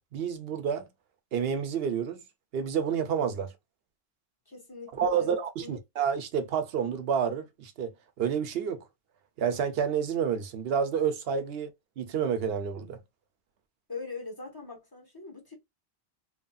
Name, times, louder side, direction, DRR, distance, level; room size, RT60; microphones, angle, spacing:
voice 1, 0.1-0.9 1.3-2.2 2.5-3.5 5.0-8.8 9.4-11.7 12.0-13.0, right 7 dB, 75° right, 0.9 m, -29 dB
voice 2, 4.5-5.8 13.9-15.5, left 3 dB, 20° left, 1.2 m, -41 dB
3.0 x 2.6 x 2.3 m
omnidirectional pair, 1.1 m